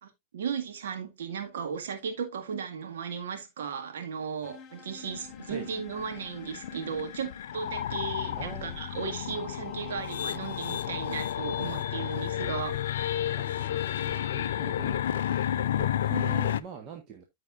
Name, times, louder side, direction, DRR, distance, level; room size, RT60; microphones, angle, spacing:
voice 1, 0.0-12.8, right 6 dB, 60° right, 1.9 m, -36 dB
sound 1, 4.4-14.8, left 7 dB, 25° left, 2.0 m, -51 dB
sound 2, 5.0-16.6, left 11 dB, 60° left, 0.4 m, -32 dB
voice 2, 8.3-8.8 13.4-13.5 14.1-15.1 15.8-17.2, right 6 dB, 35° right, 1.3 m, -42 dB
14.0 x 4.8 x 2.5 m
figure-of-eight pair, 90°, 0 cm